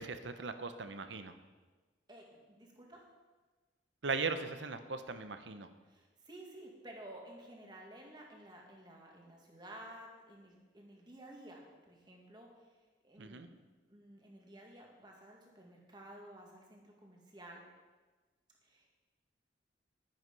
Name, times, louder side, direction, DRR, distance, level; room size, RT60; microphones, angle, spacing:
voice 1, 0.0-1.3 4.0-5.7 13.2-13.5, right 4 dB, 75° right, 9 dB, 0.9 m, -38 dB
voice 2, 2.1-3.1 5.8-12.7 13.0-13.6 13.9-17.6 18.6-18.9, right 1 dB, 25° right, 0 dB, 2.1 m, -53 dB
11.5 x 10.0 x 5.4 m, 1.3 s
head